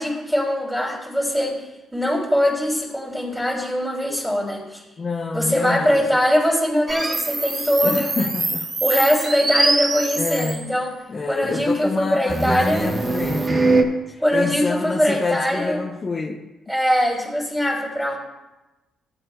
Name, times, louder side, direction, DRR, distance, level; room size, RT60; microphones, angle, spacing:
voice 1, 0.0-4.8 5.3-8.3 8.8-10.9 11.3-12.9 14.2-15.8 16.7-18.2, equal, 5° right, 2.9 m, -22 dB
voice 2, 5.0-6.0 7.8-8.7 10.1-10.6 11.1-13.7 14.1-16.5, left 4 dB, 40° left, 0.8 m, -27 dB
sound 1, 6.9-10.7 12.3-13.8, right 3 dB, 35° right, 1.3 m, -23 dB
14.0 x 8.3 x 2.4 m
cardioid pair, 90°, 0 cm